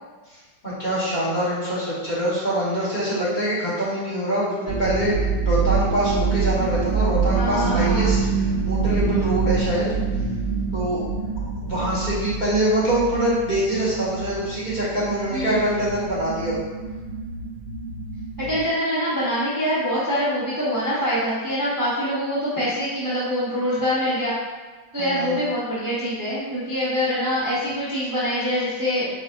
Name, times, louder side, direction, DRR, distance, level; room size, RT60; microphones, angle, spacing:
voice 1, 0.6-9.9 10.7-11.0 11.6-16.6 25.0-25.4, right 1 dB, 30° left, -9 dB, 1.2 m, -24 dB
sound 1, 4.7-18.6, right 4 dB, 70° right, 1.1 m, -26 dB
voice 2, 7.3-8.1 15.3-15.6 18.4-24.3 24.9-29.1, equal, 15° right, -10 dB, 0.7 m, -24 dB
4.4 x 4.1 x 2.5 m, 1.3 s
omnidirectional pair, 1.9 m